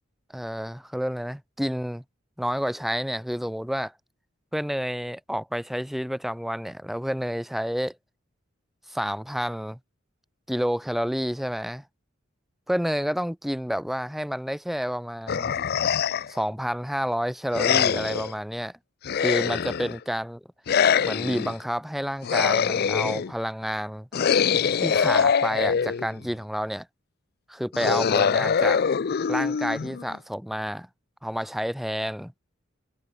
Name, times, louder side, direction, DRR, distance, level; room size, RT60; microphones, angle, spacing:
voice 1, 0.3-2.0 2.4-3.9 4.5-8.0 8.9-9.8 10.5-11.8 12.7-15.5 16.3-18.7 19.2-20.4 21.0-24.1 24.8-26.9 27.5-28.8 29.3-30.9 31.2-32.3, equal, ahead, 0.6 m, -29 dB
sound 1, 15.3-16.4 17.5-18.3 19.0-20.0 20.7-21.5 22.2-23.3 24.1-26.2 27.7-30.1, left 7 dB, 50° left, 0.4 m, -23 dB
head